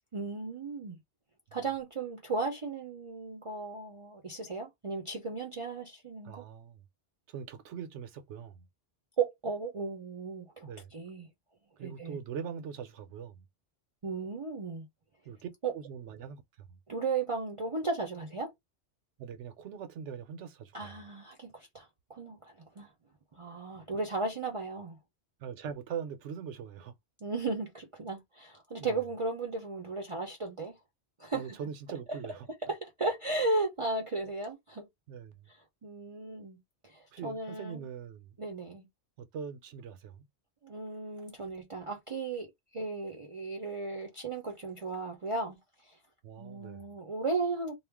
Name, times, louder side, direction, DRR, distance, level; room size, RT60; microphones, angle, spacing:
voice 1, 0.1-1.0 1.5-6.4 9.2-11.3 11.8-12.2 14.0-14.9 15.6-15.7 16.9-18.5 20.7-22.9 23.3-25.0 27.2-30.8 31.2-31.4 32.7-34.9 35.5-37.9 38.4-38.9 40.6-45.6 45.8-46.0 46.4-47.8, right 3 dB, 40° right, 0.5 m, -35 dB
voice 2, 6.2-6.8 7.3-8.7 10.6-10.9 11.8-13.5 15.3-16.8 19.2-21.0 25.4-26.9 28.8-29.0 31.3-32.4 35.1-35.5 37.1-38.4 39.2-40.2 46.2-47.0, right 7 dB, 80° right, 1.0 m, -42 dB
2.4 x 2.1 x 3.4 m
omnidirectional pair, 1.2 m